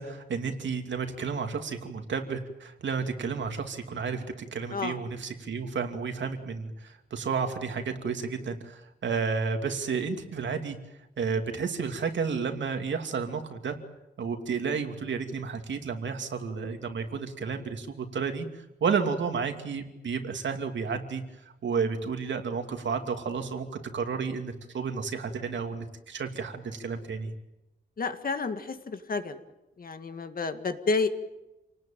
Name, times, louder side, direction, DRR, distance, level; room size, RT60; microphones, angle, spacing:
voice 1, 0.0-10.8 11.2-13.8 14.2-21.2 21.6-23.7 23.9-27.3, right 5 dB, 75° right, 5 dB, 2.7 m, -31 dB
voice 2, 28.0-29.4 29.8-31.1, left 4 dB, 50° left, 8 dB, 1.9 m, -30 dB
28.0 x 19.0 x 9.1 m, 0.98 s
wide cardioid pair, 145°, 19 cm